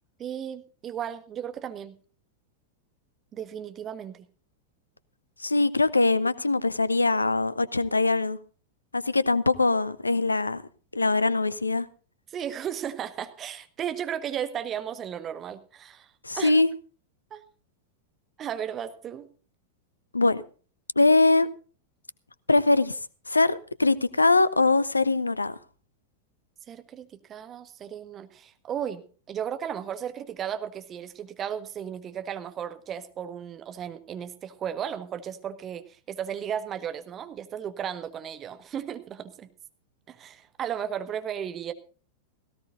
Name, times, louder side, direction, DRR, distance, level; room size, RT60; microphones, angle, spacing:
voice 1, 0.2-2.0 3.3-4.2 12.3-16.1 16.3-16.6 17.3-17.4 18.4-19.3 26.7-39.5 40.1-41.7, right 9 dB, 25° right, 1.5 m, -35 dB
voice 2, 5.4-8.4 8.9-10.6 10.9-11.9 16.2-16.7 20.1-20.4 21.0-21.5 22.5-23.0 23.3-25.6, left 3 dB, 80° left, 0.8 m, -22 dB
18.0 x 17.0 x 2.6 m
figure-of-eight pair, 90°, 0 cm